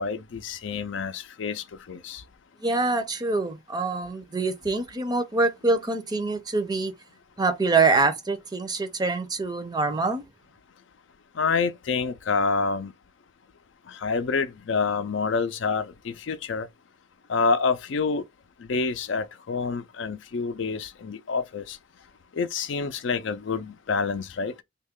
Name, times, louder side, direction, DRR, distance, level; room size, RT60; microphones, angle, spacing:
voice 1, 0.0-2.2 11.3-12.9 13.9-16.7 17.3-18.2 18.6-21.8 22.3-24.5, left 4 dB, 70° left, 0.4 m, -27 dB
voice 2, 2.6-6.9 7.4-10.2, right 3 dB, 20° right, 0.5 m, -25 dB
3.1 x 2.3 x 3.5 m
head